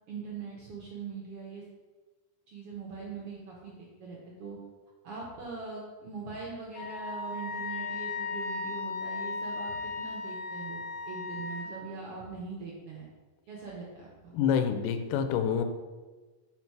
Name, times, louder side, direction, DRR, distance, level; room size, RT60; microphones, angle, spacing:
voice 1, 0.1-1.6 2.5-4.6 5.0-13.1 13.5-14.3, right 5 dB, 70° right, -4 dB, 1.4 m, -42 dB
Wind instrument woodwind instrument, 6.7-11.7, left 4 dB, 65° left, 2.3 m, -36 dB
voice 2, 14.3-15.6, left 7 dB, 85° left, 8 dB, 2.2 m, -27 dB
5.8 x 4.6 x 4.6 m, 1.3 s
omnidirectional pair, 3.7 m